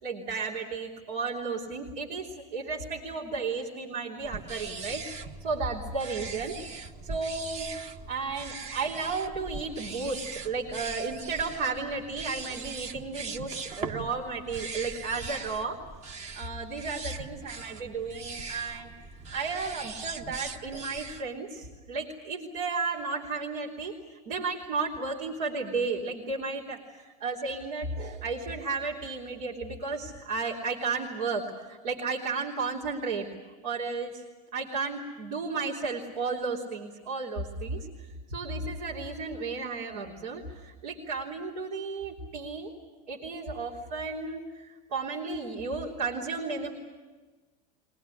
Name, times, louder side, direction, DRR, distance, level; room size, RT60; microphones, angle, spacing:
voice 1, 0.0-5.0 5.4-6.6 7.0-7.7 8.1-15.8 16.3-18.9 19.3-23.9 24.3-33.3 33.6-34.2 34.5-37.9 38.3-42.7 43.1-46.7, right 4 dB, 80° right, -4 dB, 3.4 m, -33 dB
sound 1, 4.2-21.2, right 4 dB, 35° right, 1.3 m, -40 dB
23.0 x 19.5 x 10.0 m, 1.3 s
supercardioid pair, 135°, 20 cm